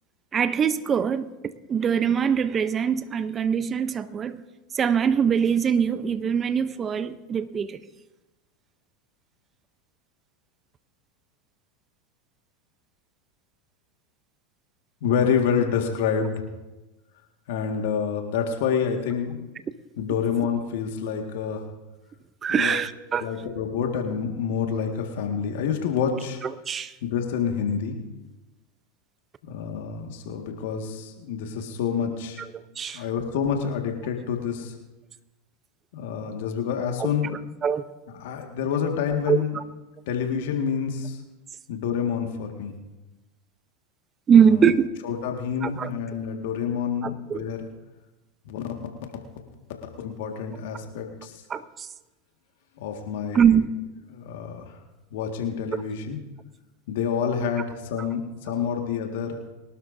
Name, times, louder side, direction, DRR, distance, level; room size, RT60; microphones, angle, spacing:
voice 1, 0.3-1.3 1.7-4.4 4.7-7.8 22.4-23.3 26.4-26.9 32.5-33.0 37.0-37.1 37.6-37.8 39.3-39.6 44.3-44.9 45.6-45.9 47.0-47.4 51.5-51.9 53.3-53.7, right 7 dB, 30° right, 0.7 m, -22 dB
voice 2, 15.0-16.5 17.5-19.5 20.0-21.7 22.5-22.8 23.2-26.4 27.0-28.0 29.4-32.4 32.9-34.7 35.9-37.4 38.1-39.6 40.1-41.2 41.7-42.8 44.4-44.6 45.0-47.6 48.5-48.6 50.0-51.4 52.8-53.6 54.1-54.8 55.1-56.2 56.9-59.4, left 7 dB, 70° left, 1.8 m, -28 dB
22.5 x 12.5 x 2.7 m
hypercardioid pair, 100°, 0 cm